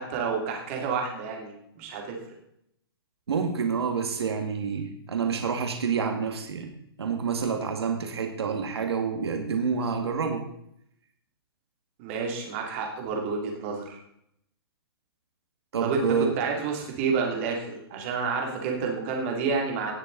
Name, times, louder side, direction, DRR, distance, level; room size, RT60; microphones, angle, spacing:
voice 1, 0.0-2.2 12.0-14.0 15.8-16.0 16.4-19.9, right 5 dB, 30° right, 1 dB, 3.0 m, -29 dB
voice 2, 3.3-6.7 7.0-10.5 15.7-16.3, right 6 dB, 85° right, 4 dB, 2.3 m, -28 dB
18.0 x 7.5 x 4.1 m, 0.72 s
hypercardioid pair, 165°, 13 cm